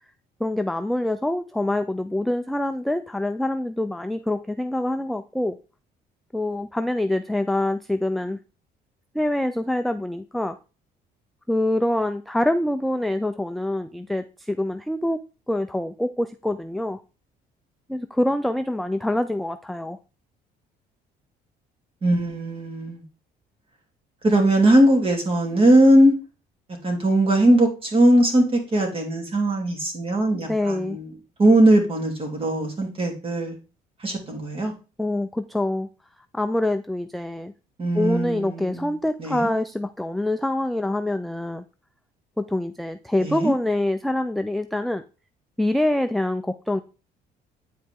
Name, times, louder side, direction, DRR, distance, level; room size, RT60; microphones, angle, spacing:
voice 1, 0.4-5.6 6.3-8.4 9.1-10.6 11.5-15.2 15.5-17.0 17.9-20.0 30.5-31.0 35.0-35.9 36.3-37.5 37.9-41.6 42.4-45.0 45.6-46.8, left 1 dB, ahead, 0.4 m, -25 dB
voice 2, 22.0-23.0 24.2-26.1 26.8-31.1 31.4-33.5 34.0-34.7 37.8-38.9 39.2-39.5 43.2-43.5, right 1 dB, 35° right, 2.9 m, -19 dB
9.1 x 4.8 x 3.6 m
cardioid pair, 110°, 17 cm